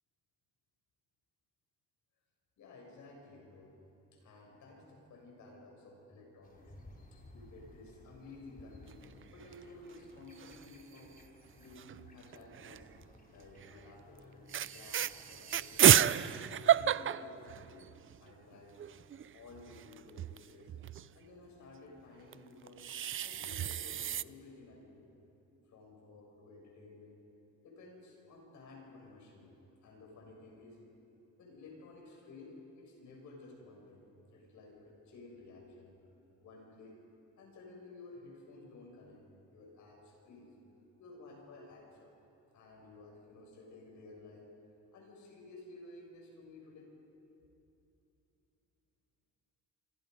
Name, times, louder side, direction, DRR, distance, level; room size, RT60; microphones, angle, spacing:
voice 1, 2.6-3.7 4.1-6.7 7.1-11.1 11.6-15.9 16.4-17.8 18.2-18.8 19.3-20.7 21.1-25.1 25.7-27.2 27.6-29.5 29.8-30.8 31.4-36.0 36.4-37.0 37.4-39.2 39.5-40.5 41.0-42.1 42.5-44.5 44.9-46.9, left 2 dB, 75° left, 0 dB, 7.3 m, -54 dB
sound 1, 6.4-16.0, left 1 dB, 30° left, 3.8 m, -59 dB
sound 2, 8.9-9.6 9.9-10.0 10.2-10.8 11.8-13.0 13.6-13.8 14.2-14.3 14.5-18.2 18.5-18.6 18.8-21.1 22.3-24.2, right 10 dB, 45° right, 0.5 m, -31 dB
27.5 x 25.5 x 5.5 m, 2.9 s
cardioid pair, 90°, 30 cm